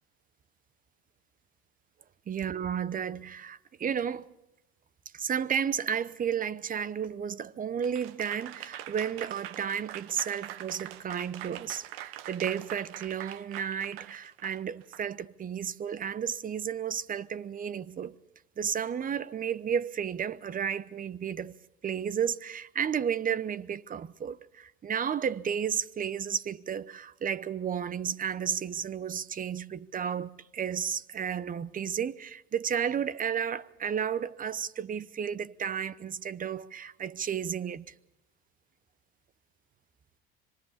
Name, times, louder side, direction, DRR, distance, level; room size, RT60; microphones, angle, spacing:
voice 1, 2.3-4.3 5.1-18.2 18.6-21.5 21.8-37.8, right 8 dB, 30° right, 0.9 m, -32 dB
Applause / Crowd, 7.8-15.0, right 13 dB, 80° right, 1.3 m, -43 dB
26.5 x 24.5 x 4.2 m
supercardioid pair, 95°, 30 cm